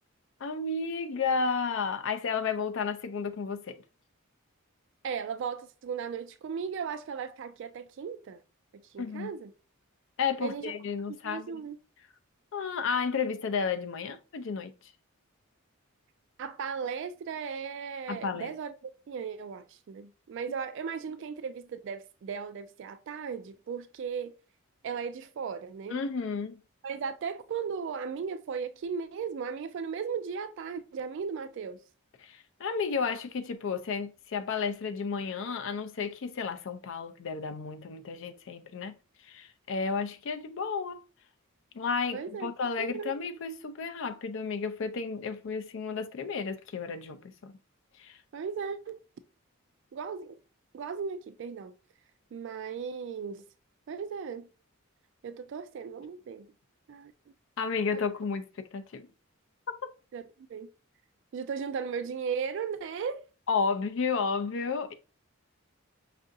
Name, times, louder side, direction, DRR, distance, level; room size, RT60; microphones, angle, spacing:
voice 1, 0.4-3.8 9.0-9.3 10.2-11.6 12.5-14.9 18.1-18.5 25.9-26.6 32.2-39.0 39.2-41.0 41.7-47.6 48.0-48.2 57.6-59.1 59.7-59.8 63.5-64.9, left 5 dB, 60° left, 0.4 m, -32 dB
voice 2, 5.0-8.4 8.7-9.5 10.4-10.7 11.1-11.8 16.4-24.3 24.8-26.0 26.8-31.8 42.1-42.5 42.8-43.1 48.3-49.0 49.9-50.4 50.7-51.7 52.3-53.5 53.9-54.5 55.2-56.5 56.9-57.1 57.9-58.0 60.1-60.7 61.3-63.2, right 6 dB, 60° right, 0.3 m, -36 dB
5.3 x 2.5 x 2.6 m
head